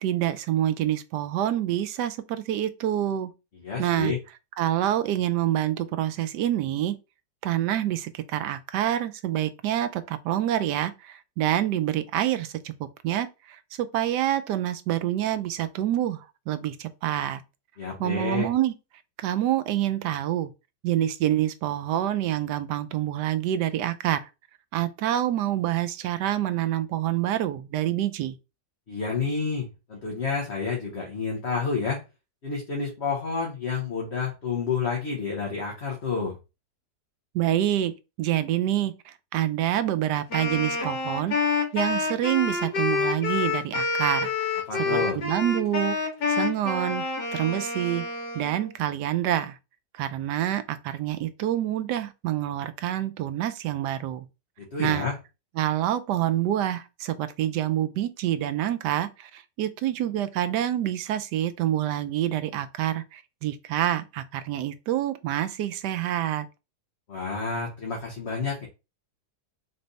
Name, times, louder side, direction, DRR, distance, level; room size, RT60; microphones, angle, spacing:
voice 1, 0.0-3.3 3.8-4.1 4.6-7.0 7.4-12.7 13.0-17.4 18.0-18.7 19.2-20.5 20.8-24.3 24.7-28.3 37.3-44.5 44.9-46.0 46.3-47.0 47.3-48.1 48.3-49.6 49.9-54.3 54.8-55.1 55.6-66.5, right 12 dB, 80° right, 1.2 m, -27 dB
voice 2, 3.6-4.2 17.8-18.5 28.9-32.0 32.4-36.3 44.7-45.2 54.6-55.2 67.1-68.7, left 5 dB, 45° left, 1.3 m, -29 dB
Wind instrument woodwind instrument, 40.3-48.7, left 4 dB, 80° left, 2.0 m, -28 dB
3.9 x 3.3 x 4.0 m
omnidirectional pair, 1.8 m